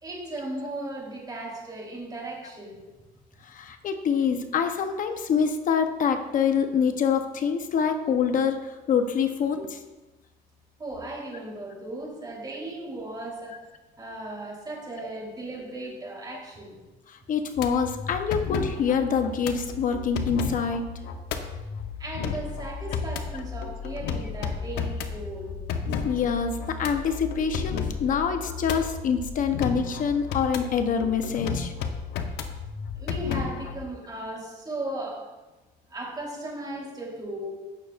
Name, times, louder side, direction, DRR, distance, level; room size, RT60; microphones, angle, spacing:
voice 1, 0.0-2.8 10.8-13.6 14.0-16.7 22.0-25.6 32.9-35.3 35.9-37.5, right 1 dB, 25° right, -2 dB, 3.3 m, -36 dB
voice 2, 3.4-9.8 13.5-13.6 17.1-20.8 26.0-31.7, left 6 dB, 50° left, 7 dB, 0.8 m, -26 dB
sound 1, 17.6-33.9, left 6 dB, 85° left, 0.9 m, -33 dB
16.0 x 6.5 x 2.4 m, 1.1 s
cardioid pair, 110°, 17 cm